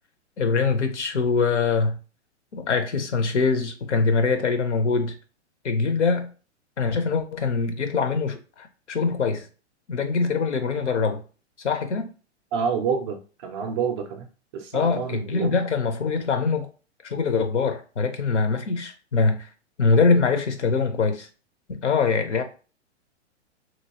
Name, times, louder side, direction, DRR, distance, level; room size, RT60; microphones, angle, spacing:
voice 1, 0.4-2.0 2.5-5.1 5.6-6.3 6.8-9.5 9.9-11.2 11.6-12.1 14.7-16.7 17.0-19.5 19.8-21.3 21.7-22.4, left 4 dB, 80° left, 0.8 m, -23 dB
voice 2, 12.5-14.3 14.5-15.5, right 6 dB, 25° right, 0.3 m, -28 dB
3.0 x 2.7 x 2.8 m
hypercardioid pair, 115°, 35 cm